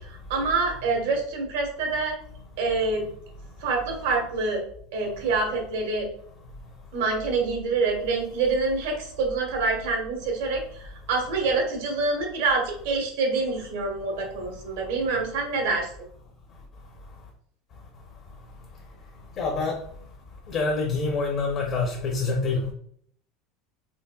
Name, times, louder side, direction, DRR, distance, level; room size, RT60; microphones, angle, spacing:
voice 1, 0.1-2.2 2.6-3.1 3.6-4.6 4.9-6.1 6.9-15.9, right 3 dB, 75° right, 1 dB, 1.2 m, -26 dB
voice 2, 19.4-19.7 20.5-22.7, left 3 dB, 35° left, 0 dB, 0.6 m, -26 dB
4.4 x 3.1 x 2.2 m, 0.62 s
cardioid pair, 180°, 0 cm